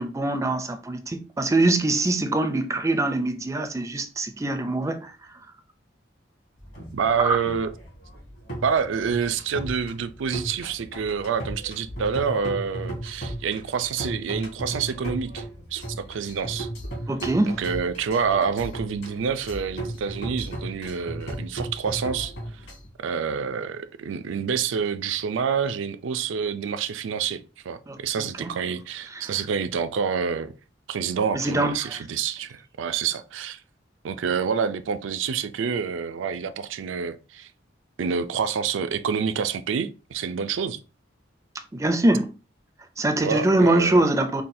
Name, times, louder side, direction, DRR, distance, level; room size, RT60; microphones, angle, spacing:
voice 1, 0.0-5.1 7.2-7.4 17.1-17.6 27.9-28.5 29.1-29.3 31.3-32.0 41.7-42.3 43.0-44.4, right 2 dB, 15° right, 0.4 m, -23 dB
sound 1, 6.6-22.9, right 1 dB, 60° left, 2.1 m, -36 dB
voice 2, 6.9-7.7 8.6-15.4 15.7-16.7 17.5-22.3 23.0-30.5 30.9-33.6 34.0-37.5 38.0-40.8 43.2-44.0, right 6 dB, 80° right, 0.4 m, -27 dB
5.6 x 2.3 x 2.6 m
head